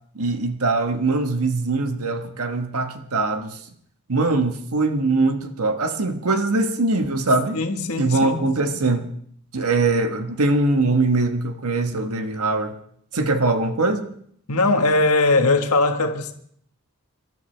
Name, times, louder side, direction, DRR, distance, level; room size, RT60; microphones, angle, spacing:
voice 1, 0.1-3.6 4.1-7.6 8.0-9.1 9.5-12.7 13.1-14.1, right 3 dB, 85° right, 1.3 m, -22 dB
voice 2, 7.5-8.5 14.5-16.3, left 2 dB, 85° left, 1.4 m, -20 dB
26.0 x 12.0 x 3.3 m
head